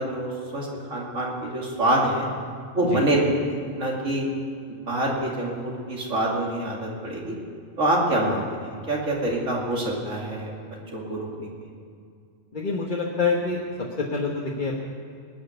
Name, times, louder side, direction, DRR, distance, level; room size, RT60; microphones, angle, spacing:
voice 1, 0.0-2.3 2.7-4.3 4.7-7.3 7.8-8.4 8.9-10.5 10.9-11.5, right 1 dB, 80° right, -2 dB, 2.9 m, -26 dB
voice 2, 12.5-13.6 14.0-14.8, left 4 dB, 40° left, -2 dB, 1.3 m, -26 dB
19.5 x 6.6 x 9.6 m, 2.3 s
omnidirectional pair, 1.3 m